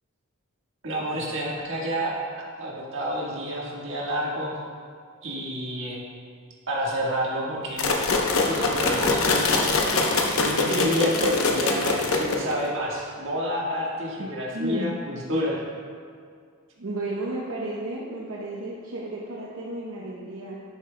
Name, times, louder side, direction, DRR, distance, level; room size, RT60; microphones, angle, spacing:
voice 1, 0.8-4.6 5.2-6.0 6.7-8.0 8.5-9.8 10.3-15.6, equal, 60° right, -4 dB, 1.5 m, -29 dB
sound 1, 7.8-12.7, left 3 dB, 80° left, 0.8 m, -23 dB
voice 2, 14.5-14.9 16.8-20.6, right 2 dB, 80° right, -4 dB, 0.8 m, -32 dB
11.0 x 7.3 x 2.2 m, 2.1 s
head